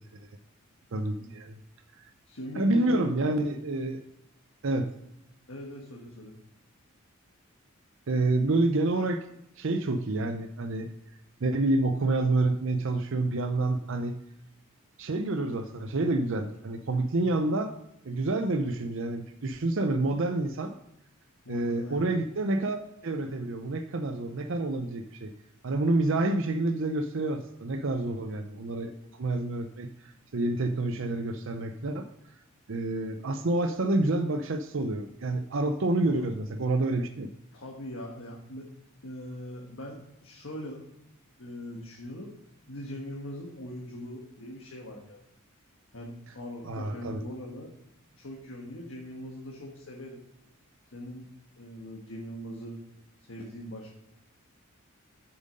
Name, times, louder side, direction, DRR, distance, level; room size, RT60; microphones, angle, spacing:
voice 1, 0.9-1.6 2.5-4.0 4.6-4.9 8.1-9.3 9.6-10.9 11.4-14.2 15.0-17.7 18.0-20.7 21.5-22.8 23.0-25.3 25.6-32.1 32.7-37.3 46.6-47.2, right 2 dB, 60° right, 7 dB, 0.6 m, -28 dB
voice 2, 2.3-3.1 5.5-6.3 21.4-22.0 36.2-36.3 36.8-36.9 37.5-38.7 39.0-40.8 41.4-42.3 42.7-45.2 45.9-47.7 48.2-50.2 50.9-51.3 51.6-52.8 53.3-54.0, equal, 65° left, -1 dB, 1.4 m, -41 dB
7.9 x 7.3 x 5.2 m, 0.85 s
head